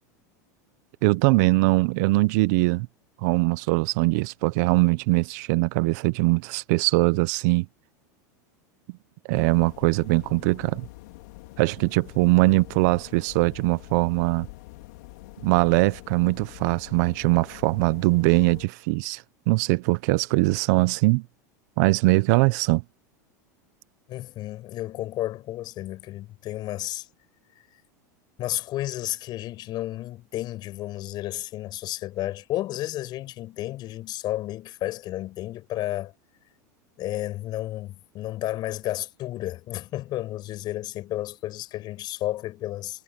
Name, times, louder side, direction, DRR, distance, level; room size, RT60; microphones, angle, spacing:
voice 1, 1.0-2.9 3.2-7.6 9.3-10.9 11.6-14.5 15.4-21.2 21.8-22.8, right 23 dB, 65° right, 0.9 m, -22 dB
sound 1, 9.3-18.7, left 21 dB, 70° left, 4.6 m, -45 dB
voice 2, 24.1-27.1 27.7-27.8 28.4-36.1 37.0-43.0, left 15 dB, 45° left, 7.5 m, -32 dB
hypercardioid pair, 110°, 10 cm